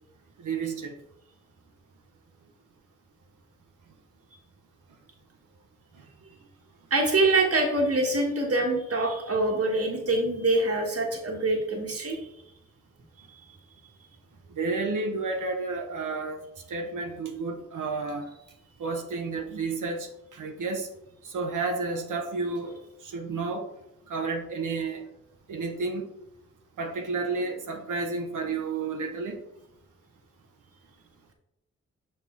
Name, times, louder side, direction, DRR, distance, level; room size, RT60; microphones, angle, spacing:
voice 1, 0.4-0.9 14.5-16.4 16.7-18.3 18.8-20.9 21.2-22.8 23.0-23.7 24.1-25.0 25.5-26.1 26.8-29.4, right 3 dB, 90° right, 3 dB, 0.8 m, -31 dB
voice 2, 6.9-12.2, right 2 dB, 50° right, 0 dB, 1.3 m, -25 dB
6.5 x 5.3 x 3.6 m, 0.84 s
cardioid pair, 40°, 30 cm